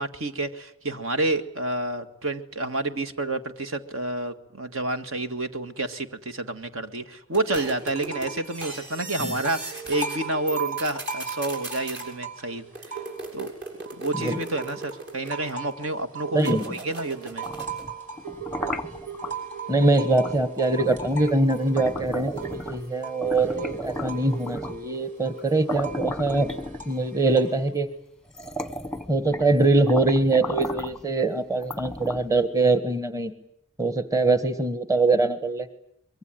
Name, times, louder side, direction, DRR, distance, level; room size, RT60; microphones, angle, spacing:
voice 1, 0.0-13.0 13.3-13.5 14.0-17.4, right 2 dB, 70° right, 9 dB, 1.8 m, -29 dB
sound 1, 7.3-10.2 10.5-12.1 12.7-15.7 16.4-17.9, right 2 dB, 50° right, 7.4 m, -39 dB
sound 2, 7.9-8.5 8.8-13.5 13.8-27.7, right 5 dB, 35° right, 6.0 m, -38 dB
sound 3, 17.3-19.3 20.2-20.4 20.8-22.9 23.2-24.9 25.4-25.5 25.7-27.2 27.8-27.9 28.3-29.6 29.9-31.0 31.6-32.4, equal, 5° left, 1.0 m, -34 dB
voice 2, 19.7-26.5 26.9-27.9 29.1-33.3 33.8-35.7, right 2 dB, 15° right, 10 dB, 1.4 m, -23 dB
24.5 x 23.0 x 9.3 m, 0.71 s
head